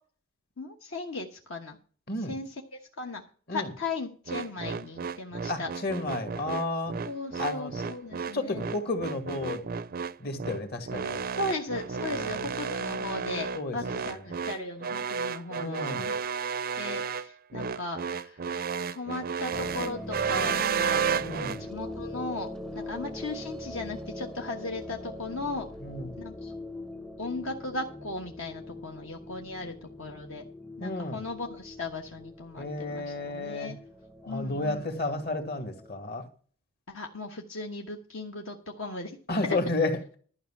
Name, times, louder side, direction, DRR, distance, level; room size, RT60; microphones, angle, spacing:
voice 1, 0.6-1.8 2.3-3.2 3.5-5.7 7.0-8.6 11.3-16.2 16.8-18.4 18.9-21.2 21.5-22.5 22.7-25.7 26.2-26.5 27.2-30.4 30.8-33.8 34.3-34.8 36.9-39.2 39.4-39.6, left 2 dB, 65° left, 2 dB, 1.3 m, -37 dB
voice 2, 2.1-2.4 3.5-3.7 5.5-7.0 7.4-7.7 8.3-9.7 10.2-11.2 12.1-12.5 13.5-14.2 15.6-16.1 21.2-21.6 25.8-26.1 30.8-31.3 32.6-33.7 34.2-36.3 39.3-40.2, left 2 dB, 45° left, 7 dB, 2.0 m, -32 dB
sound 1, 4.3-21.6, right 6 dB, 45° right, 0.4 m, -32 dB
sound 2, 19.5-35.9, left 1 dB, ahead, 0.6 m, -42 dB
12.5 x 5.6 x 7.3 m, 0.42 s
head